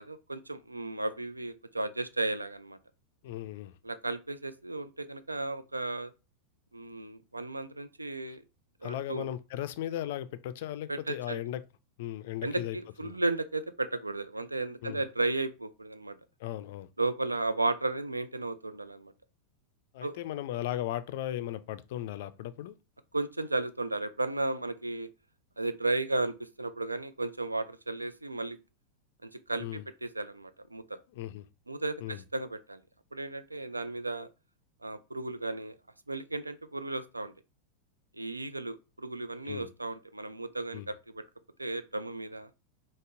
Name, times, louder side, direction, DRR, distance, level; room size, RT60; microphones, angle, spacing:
voice 1, 0.0-2.8 3.8-6.1 6.7-8.4 8.8-9.2 10.9-11.4 12.4-16.2 17.0-19.1 20.0-20.2 23.1-25.1 25.6-28.6 29.2-31.0 31.7-32.8 33.1-34.3 34.8-35.8 36.1-37.3 38.2-41.2 41.6-42.5, right 2 dB, 80° right, 0.3 m, -34 dB
voice 2, 3.2-3.7 8.8-11.6 12.0-12.8 13.0-13.2 14.8-15.0 16.4-16.9 19.9-22.7 29.6-29.8 31.1-31.4 32.0-32.2 39.5-39.7 40.7-40.9, left 12 dB, 50° left, 0.3 m, -36 dB
5.0 x 2.0 x 2.5 m
figure-of-eight pair, 90°, 0 cm